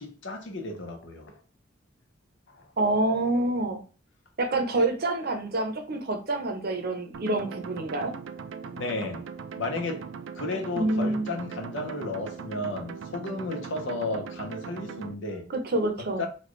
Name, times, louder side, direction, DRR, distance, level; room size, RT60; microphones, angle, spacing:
voice 1, 0.0-1.3 2.5-2.7 8.7-9.2 9.6-10.1 10.4-15.5 16.2-16.3, left 2 dB, 75° left, 0.9 m, -33 dB
voice 2, 2.8-3.8 4.4-8.1 10.7-11.3 15.5-16.2, right 2 dB, 55° right, 0.7 m, -27 dB
sound 1, 7.1-15.1, right 6 dB, 85° right, 0.4 m, -40 dB
4.2 x 2.4 x 3.1 m
head